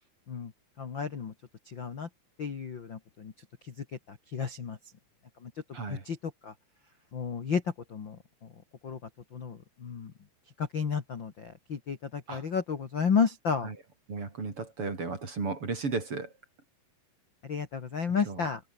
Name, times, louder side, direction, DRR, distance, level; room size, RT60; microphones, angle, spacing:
voice 1, 0.8-1.3 1.7-2.1 2.4-3.3 4.3-4.8 5.9-6.2 6.4-6.5 7.1-7.6 7.9-8.1 8.8-9.0 9.3-9.6 9.8-10.1 10.7-13.7 17.5-18.6, left 6 dB, 60° left, 1.2 m, -31 dB
voice 2, 5.7-6.0 12.3-12.4 13.6-13.8 14.1-16.3 18.2-18.5, right 4 dB, 30° right, 4.1 m, -34 dB
omnidirectional pair, 5.4 m